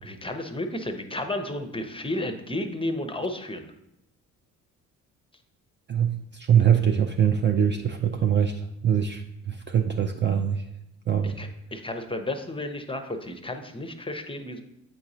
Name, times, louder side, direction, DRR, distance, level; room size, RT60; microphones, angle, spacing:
voice 1, 0.0-3.7 11.2-14.6, left 1 dB, 15° left, 7 dB, 0.6 m, -32 dB
voice 2, 5.9-10.7 11.1-11.4, right 8 dB, 30° right, 4 dB, 0.4 m, -23 dB
7.7 x 4.7 x 2.7 m, 0.83 s
hypercardioid pair, 45°, 41 cm